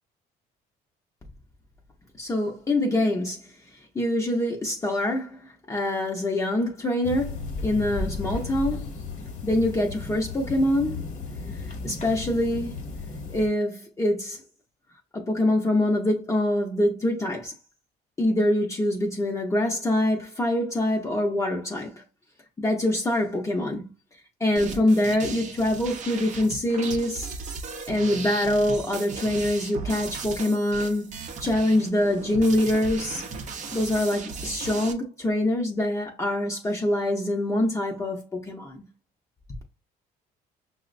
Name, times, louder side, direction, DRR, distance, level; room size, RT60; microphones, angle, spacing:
voice 1, 2.2-3.4 3.9-8.9 9.4-11.0 11.6-12.8 13.3-14.4 15.1-17.5 18.2-22.0 22.6-23.9 24.4-27.3 27.9-31.1 31.4-33.3 33.7-38.8, left 1 dB, 20° left, 0.6 m, -25 dB
sound 1, 7.0-13.5, left 4 dB, 45° left, 1.0 m, -34 dB
sound 2, 24.6-34.9, right 4 dB, 45° right, 0.6 m, -36 dB
5.5 x 2.0 x 2.5 m
cardioid pair, 110°, 17 cm